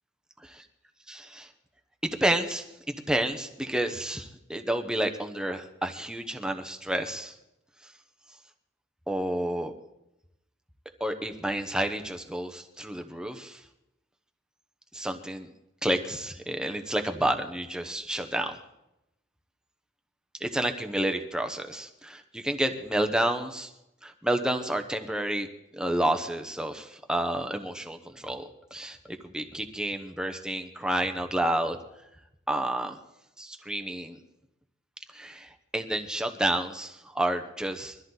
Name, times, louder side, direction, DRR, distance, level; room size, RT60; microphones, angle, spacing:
voice 1, 1.1-1.5 2.0-7.3 7.8-7.9 9.1-9.7 11.0-13.6 14.9-15.5 15.8-18.6 20.4-23.7 24.0-25.5 25.7-29.0 29.2-31.8 32.5-33.0 33.4-34.2 35.1-38.0, right 1 dB, 5° right, 5 dB, 0.9 m, -30 dB
22.5 x 13.5 x 4.0 m, 0.88 s
head